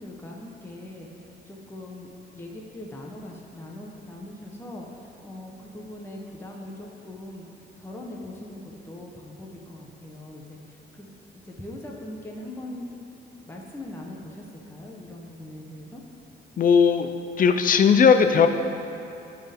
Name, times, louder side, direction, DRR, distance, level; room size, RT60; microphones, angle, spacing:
voice 1, 0.0-12.9 13.3-16.0, left 1 dB, 10° left, -1 dB, 1.0 m, -41 dB
voice 2, 16.6-17.1 17.4-18.5, left 6 dB, 45° left, 8 dB, 0.5 m, -17 dB
12.5 x 4.6 x 3.6 m, 2.7 s
cardioid pair, 90°, 20 cm